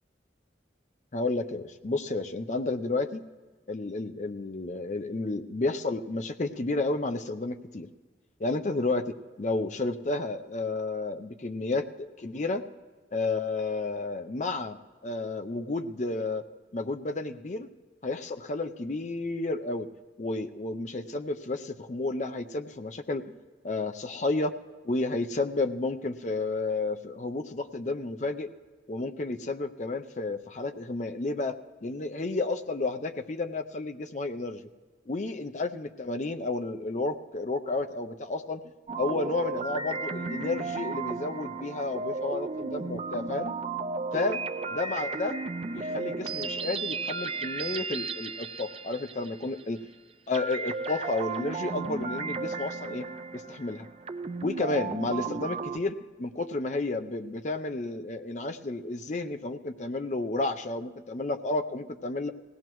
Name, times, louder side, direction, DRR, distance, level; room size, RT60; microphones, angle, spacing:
voice 1, 1.1-3.2 3.7-7.9 8.4-12.6 13.1-16.5 16.7-17.7 18.0-19.9 20.2-23.4 23.6-24.5 24.8-28.5 28.9-34.7 35.1-38.6 39.0-43.5 44.1-44.4 44.7-45.4 45.7-49.8 50.3-53.1 53.3-53.9 54.4-62.3, left 2 dB, 40° left, 8 dB, 0.5 m, -31 dB
sound 1, 38.9-49.8 50.3-55.8, right 4 dB, 30° right, 0.4 m, -34 dB
20.5 x 16.5 x 3.1 m, 1.3 s
head